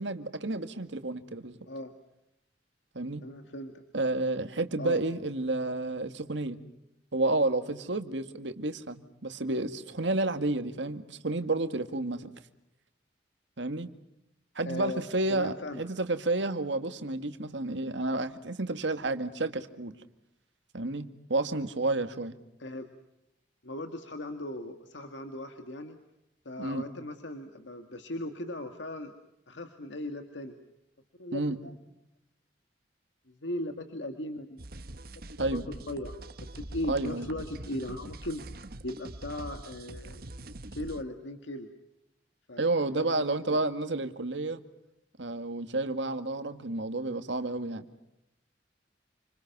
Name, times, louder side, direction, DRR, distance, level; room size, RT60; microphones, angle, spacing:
voice 1, 0.0-1.6 2.9-3.2 3.9-6.6 7.1-12.3 13.6-13.9 14.6-19.9 20.7-22.4 26.6-26.9 31.3-31.6 35.4-35.7 36.9-37.3 42.6-44.6 45.2-47.8, right 2 dB, 85° right, 8 dB, 2.0 m, -31 dB
voice 2, 3.2-3.8 4.8-5.0 14.6-15.0 15.3-15.8 22.6-22.9 23.6-26.0 26.5-29.1 29.5-30.6 31.2-31.8 33.3-34.6 35.4-35.6 35.9-36.2 36.6-38.4 38.8-40.2 40.7-41.7 42.5-43.6, left 1 dB, 90° left, 6 dB, 2.0 m, -38 dB
sound 1, 34.6-41.0, right 1 dB, 55° right, 1.3 m, -44 dB
28.5 x 27.0 x 6.0 m, 0.85 s
head